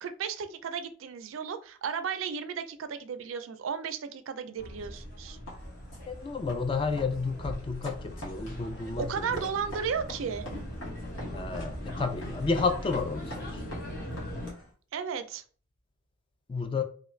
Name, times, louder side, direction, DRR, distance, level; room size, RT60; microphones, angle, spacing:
voice 1, 0.0-5.4 9.0-10.4 14.9-15.4, right 6 dB, 80° right, 0.4 m, -34 dB
sound 1, 4.6-14.5, equal, 50° left, 1.2 m, -40 dB
sound 2, 5.5-14.7, equal, 80° left, 1.4 m, -46 dB
voice 2, 6.1-9.5 11.3-13.6 16.5-16.8, left 4 dB, 25° left, 0.3 m, -31 dB
2.9 x 2.3 x 3.1 m
head